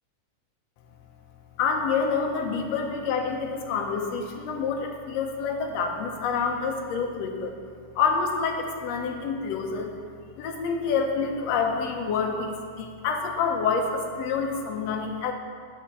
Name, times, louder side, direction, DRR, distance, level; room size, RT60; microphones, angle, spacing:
voice 1, 1.6-7.5 7.9-9.9 10.4-15.3, left 5 dB, 75° left, 2 dB, 1.6 m, -27 dB
8.8 x 6.0 x 4.7 m, 2.1 s
omnidirectional pair, 3.8 m